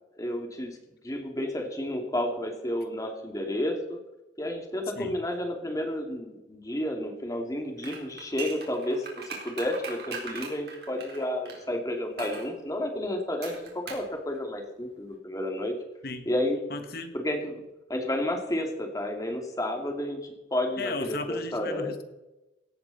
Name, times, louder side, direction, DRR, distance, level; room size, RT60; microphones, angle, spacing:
voice 1, 0.2-0.8 1.0-4.0 4.4-15.7 16.3-16.6 17.1-17.6 17.9-21.9, left 1 dB, 20° left, 3 dB, 2.5 m, -31 dB
sound 1, 7.8-11.6 12.2-12.5 13.4-14.1 14.3-14.4, right 4 dB, 60° right, 4.1 m, -39 dB
voice 2, 16.7-17.2 20.8-22.0, left 3 dB, 55° left, 9 dB, 1.5 m, -35 dB
17.0 x 13.0 x 4.2 m, 1.0 s
head